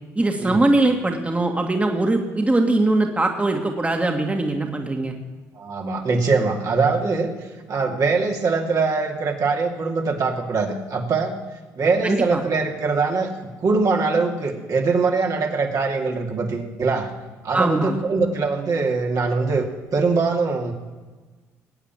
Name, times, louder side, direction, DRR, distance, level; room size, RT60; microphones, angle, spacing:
voice 1, 0.2-5.1 12.0-12.4 17.5-18.0, right 2 dB, 15° right, 3 dB, 2.1 m, -21 dB
voice 2, 5.5-7.3 7.7-11.3 11.8-17.1 17.4-20.7, right 4 dB, 50° right, 1 dB, 2.7 m, -22 dB
20.0 x 8.8 x 7.4 m, 1.3 s
hypercardioid pair, 55°, 8 cm